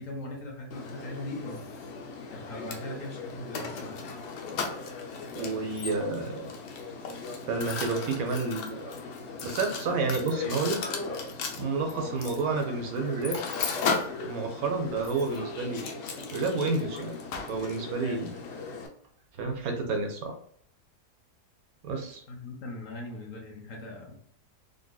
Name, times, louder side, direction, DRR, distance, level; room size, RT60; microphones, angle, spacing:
voice 1, 0.0-1.7 2.3-4.2 18.0-18.4 22.3-24.2, left 2 dB, 60° left, 0 dB, 1.1 m, -40 dB
Mechanisms, 0.7-18.9, left 4 dB, 90° left, 1.3 m, -36 dB
voice 2, 5.4-6.5 7.5-8.9 9.4-10.8 11.6-13.4 14.2-15.9 16.3-17.1 17.5-18.3 19.4-20.3 21.8-22.2, right 3 dB, 70° right, 4 dB, 1.0 m, -30 dB
3.9 x 2.8 x 2.3 m, 0.63 s
omnidirectional pair, 1.7 m